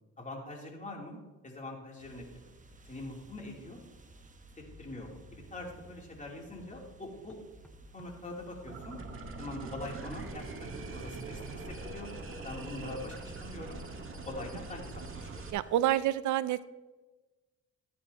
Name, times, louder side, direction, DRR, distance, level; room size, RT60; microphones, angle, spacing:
voice 1, 0.2-2.2 2.8-3.8 4.5-7.4 7.9-9.0 9.4-12.1 12.4-13.8 14.2-15.5, left 2 dB, 25° left, -1 dB, 3.2 m, -43 dB
sound 1, 2.0-16.1, right 1 dB, 25° right, 1.2 m, -55 dB
sound 2, 7.3-8.1 9.0-10.5 11.5-12.9 14.4-15.5, equal, 5° left, 0.7 m, -58 dB
sound 3, 8.7-15.5, right 3 dB, 45° right, 1.8 m, -43 dB
voice 2, 15.5-16.7, right 13 dB, 75° right, 16 dB, 0.5 m, -28 dB
15.0 x 9.5 x 2.9 m, 1.2 s
cardioid pair, 90°, 30 cm